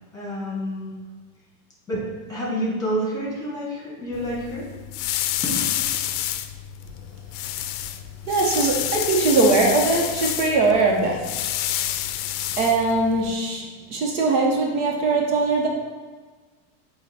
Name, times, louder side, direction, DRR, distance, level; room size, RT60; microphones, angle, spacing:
voice 1, 0.1-0.9 1.9-4.7 5.4-5.6, equal, 10° left, -4 dB, 1.6 m, -28 dB
sound 1, 4.1-13.3, left 12 dB, 55° left, 0.5 m, -29 dB
voice 2, 8.3-11.3 12.6-13.6 13.9-15.7, right 3 dB, 75° right, 0 dB, 1.4 m, -21 dB
8.0 x 2.8 x 4.5 m, 1.4 s
supercardioid pair, 140°, 45 cm